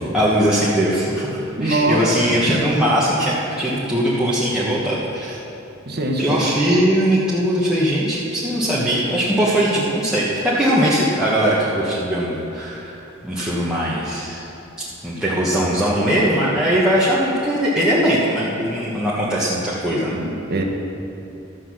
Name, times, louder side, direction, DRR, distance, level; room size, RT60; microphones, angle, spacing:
voice 1, 0.1-1.3 1.6-5.4 6.2-13.0 13.2-14.4 15.0-20.2, equal, 5° right, -9 dB, 1.3 m, -20 dB
voice 2, 1.6-2.4 5.9-6.3 20.1-20.6, right 1 dB, 55° right, 2 dB, 1.3 m, -22 dB
12.5 x 7.8 x 6.3 m, 2.9 s
head